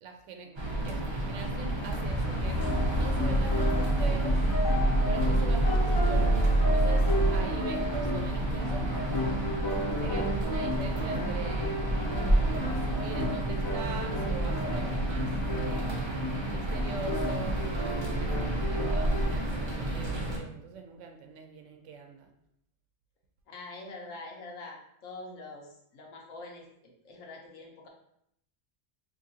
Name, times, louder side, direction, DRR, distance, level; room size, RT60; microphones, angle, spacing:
voice 1, 0.0-2.6 2.9-4.4 5.1-8.9 9.8-12.0 12.5-15.9 16.5-17.7 18.1-22.3, right 5 dB, 75° right, 4 dB, 0.9 m, -43 dB
sound 1, 0.6-20.4, right 1 dB, 30° right, 0.5 m, -31 dB
sound 2, 2.0-7.4, right 1 dB, 55° left, 0.8 m, -26 dB
sound 3, 2.6-19.3, left 1 dB, 25° left, 0.6 m, -34 dB
voice 2, 23.5-26.7 27.0-27.9, left 2 dB, 80° left, 0 dB, 1.2 m, -44 dB
3.8 x 3.0 x 2.7 m, 0.73 s
omnidirectional pair, 1.3 m